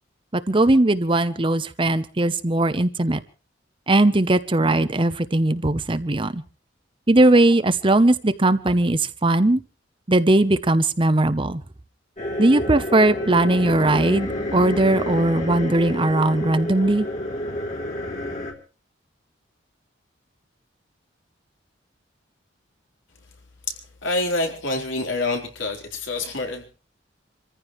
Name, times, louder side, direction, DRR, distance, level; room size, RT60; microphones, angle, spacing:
voice 1, 0.3-3.2 3.9-6.4 7.1-9.6 10.1-11.6 12.4-17.1, right 2 dB, 25° right, 13 dB, 0.8 m, -19 dB
sound 1, 12.2-18.5, left 1 dB, 40° left, 3.0 m, -29 dB
voice 2, 24.0-26.6, left 2 dB, 80° left, 3 dB, 3.9 m, -26 dB
27.5 x 15.0 x 3.1 m, 0.36 s
head